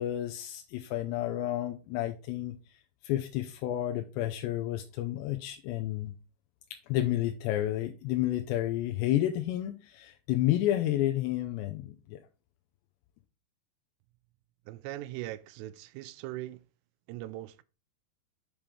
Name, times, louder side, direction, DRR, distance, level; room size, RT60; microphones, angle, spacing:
voice 1, 0.0-2.6 3.0-6.1 6.7-12.2, left 13 dB, 85° left, 2.7 m, -31 dB
voice 2, 14.7-16.6 17.1-17.6, right 15 dB, 85° right, 2.7 m, -40 dB
7.4 x 5.3 x 3.2 m
omnidirectional pair, 5.1 m